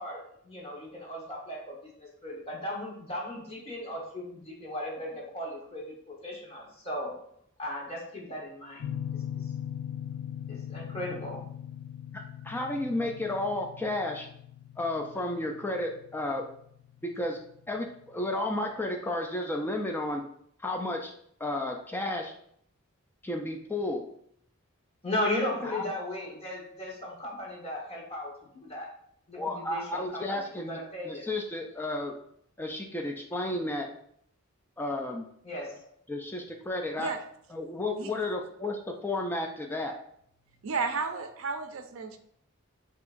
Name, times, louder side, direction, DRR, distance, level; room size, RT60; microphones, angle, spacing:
voice 1, 0.0-7.1 7.6-8.9 10.5-11.4 25.0-28.9 29.3-31.3 35.4-35.9, left 1 dB, 30° left, -3 dB, 1.2 m, -36 dB
sound 1, 8.8-17.5, left 10 dB, 80° left, 0.4 m, -40 dB
voice 2, 12.1-14.3 14.8-16.4 17.0-17.4 17.7-20.2 20.6-21.1 21.4-22.3 23.2-24.0 25.6-25.8 29.4-30.8 31.0-32.1 32.6-33.9 34.8-35.3 36.1-37.1 37.5-40.0, left 1 dB, 10° left, 2 dB, 0.3 m, -32 dB
voice 3, 40.6-42.2, right 4 dB, 65° right, 7 dB, 0.5 m, -32 dB
6.1 x 2.9 x 2.5 m, 0.68 s
head